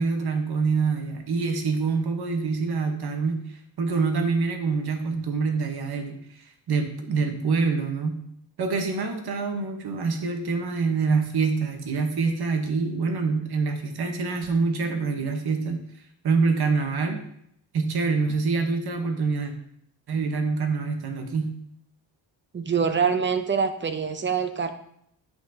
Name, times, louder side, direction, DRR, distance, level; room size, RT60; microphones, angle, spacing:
voice 1, 0.0-8.2 8.6-15.8 16.2-17.2 17.7-19.5 20.1-21.5, right 4 dB, 60° right, 5 dB, 1.3 m, -26 dB
voice 2, 22.5-24.7, right 6 dB, 25° right, 8 dB, 0.6 m, -25 dB
9.1 x 6.0 x 2.8 m, 0.71 s
wide cardioid pair, 130°, 43 cm